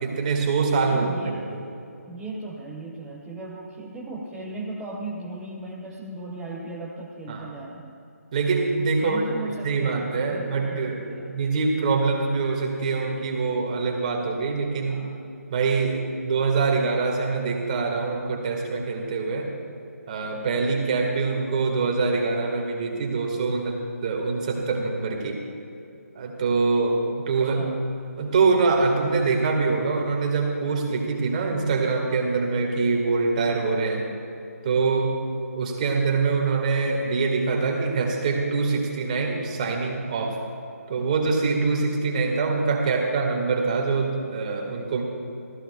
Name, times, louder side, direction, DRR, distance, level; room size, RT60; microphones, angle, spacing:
voice 1, 0.0-1.1 1.5-1.6 7.3-7.5 8.3-9.2 9.6-15.0 15.5-19.5 20.1-25.4 26.2-27.6 28.2-34.0 34.6-35.1 35.5-40.4 40.9-45.0, right 4 dB, 25° right, 1 dB, 1.8 m, -24 dB
voice 2, 0.9-1.5 2.1-8.0 9.0-11.4 14.9-15.2 27.4-27.8, right 2 dB, 5° right, -6 dB, 0.6 m, -37 dB
27.5 x 14.5 x 2.3 m, 2.8 s
figure-of-eight pair, 150°, 9 cm